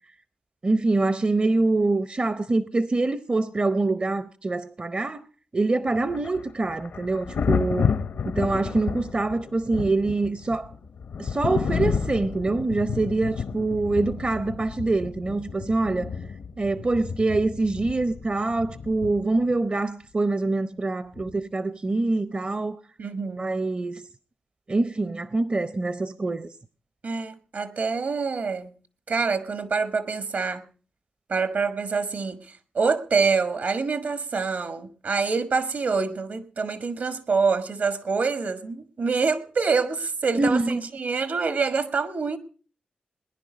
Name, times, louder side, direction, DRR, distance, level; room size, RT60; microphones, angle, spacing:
voice 1, 0.6-5.3 5.5-8.0 8.2-10.7 11.2-16.1 16.6-22.8 23.4-24.1 24.7-26.5 40.4-40.8, right 2 dB, 35° right, 0.7 m, -25 dB
Thunder, 5.9-19.5 21.2-21.4, left 6 dB, 75° left, 0.8 m, -31 dB
voice 2, 23.0-23.5 27.0-28.7 29.1-30.6 31.3-32.4 32.7-42.4, right 4 dB, 65° right, 1.5 m, -26 dB
19.5 x 10.5 x 5.1 m
supercardioid pair, 40°, 3 cm